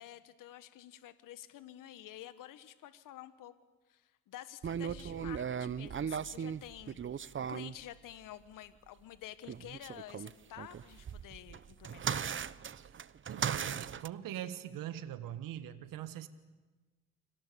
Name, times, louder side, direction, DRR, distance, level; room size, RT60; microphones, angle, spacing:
voice 1, 0.0-3.5 3.9-12.3, left 12 dB, 65° left, 12 dB, 1.5 m, -50 dB
sound 1, 4.6-7.8 9.4-14.1, right 7 dB, 35° right, 0.9 m, -38 dB
voice 2, 13.3-16.3, right 11 dB, 65° right, 12 dB, 1.6 m, -42 dB
29.5 x 25.0 x 7.0 m, 1.3 s
hypercardioid pair, 60°, 35 cm